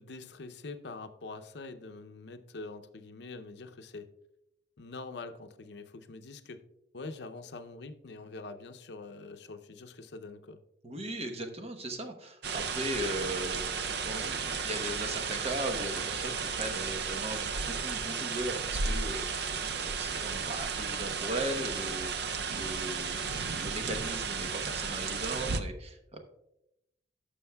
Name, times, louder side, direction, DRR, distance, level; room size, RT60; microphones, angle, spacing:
voice 1, 0.0-4.1 4.8-6.6 6.9-10.6, left 3 dB, 65° left, 8 dB, 0.6 m, -44 dB
voice 2, 10.8-26.2, right 1 dB, 35° right, 5 dB, 1.0 m, -38 dB
sound 1, 12.4-25.6, right 5 dB, 65° right, 0.5 m, -34 dB
15.0 x 6.3 x 2.3 m, 0.86 s
head